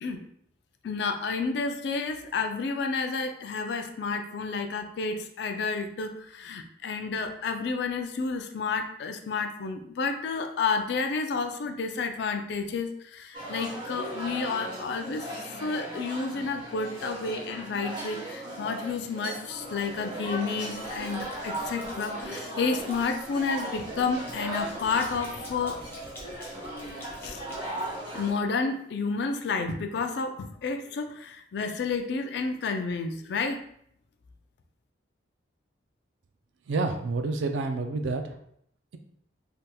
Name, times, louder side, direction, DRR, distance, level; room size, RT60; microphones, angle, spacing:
voice 1, 0.8-25.8 27.2-27.4 28.1-33.6, left 4 dB, 60° left, 6 dB, 0.3 m, -30 dB
sound 1, 13.3-28.3, right 1 dB, 25° right, 1.0 m, -37 dB
sound 2, 19.8-20.3 20.7-22.3 22.7-28.4, left 1 dB, 15° left, 0.7 m, -49 dB
voice 2, 36.7-38.3, right 3 dB, 75° right, 6 dB, 0.4 m, -28 dB
3.3 x 2.8 x 2.2 m, 0.69 s
head